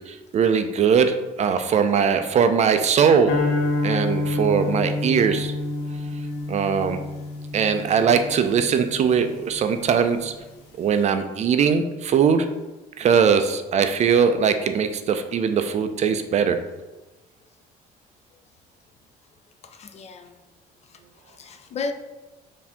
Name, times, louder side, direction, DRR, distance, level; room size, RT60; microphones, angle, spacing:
voice 1, 0.1-3.3 3.8-5.5 6.5-7.0 7.5-10.3 10.8-12.5 13.0-16.6, right 6 dB, 40° right, 8 dB, 0.4 m, -20 dB
sound 1, 3.3-9.6, left 2 dB, 80° left, 1.0 m, -28 dB
voice 2, 6.3-6.8 19.6-20.4 20.8-21.9, left 4 dB, 40° left, 7 dB, 0.4 m, -36 dB
4.7 x 2.7 x 3.5 m, 1.1 s
cardioid pair, 110°, 17 cm